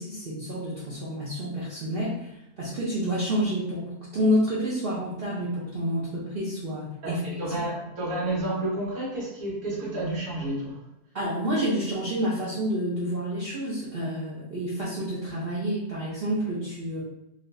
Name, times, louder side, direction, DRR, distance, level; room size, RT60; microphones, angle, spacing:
voice 1, 0.0-2.3 2.6-7.2 11.1-17.0, equal, 50° right, -7 dB, 0.8 m, -29 dB
voice 2, 7.0-10.8, right 1 dB, 70° right, -6 dB, 1.8 m, -30 dB
3.9 x 2.5 x 3.3 m, 0.85 s
omnidirectional pair, 1.6 m